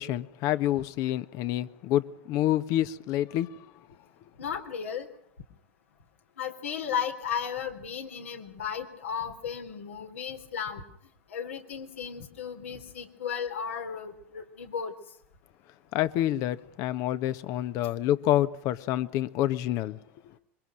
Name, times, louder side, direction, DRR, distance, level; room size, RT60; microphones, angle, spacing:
voice 1, 0.0-3.7 15.9-20.0, left 13 dB, 55° left, 1.4 m, -28 dB
voice 2, 4.4-5.1 6.4-10.8 11.3-14.9, left 7 dB, 80° left, 3.9 m, -35 dB
26.5 x 23.0 x 6.4 m
hypercardioid pair, 85°, 7 cm